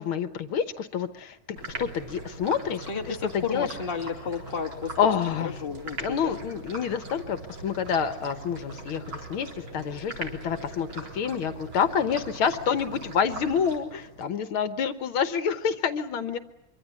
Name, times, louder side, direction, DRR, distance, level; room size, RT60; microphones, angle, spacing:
voice 1, 0.0-3.7 5.0-5.6 6.0-16.4, left 7 dB, 75° left, 11 dB, 1.9 m, -28 dB
sound 1, 1.6-14.3, right 2 dB, 70° right, 4.8 m, -41 dB
voice 2, 2.9-4.9 5.4-6.4, left 6 dB, 25° left, 3 dB, 1.9 m, -33 dB
25.5 x 25.0 x 8.3 m, 0.91 s
omnidirectional pair, 2.3 m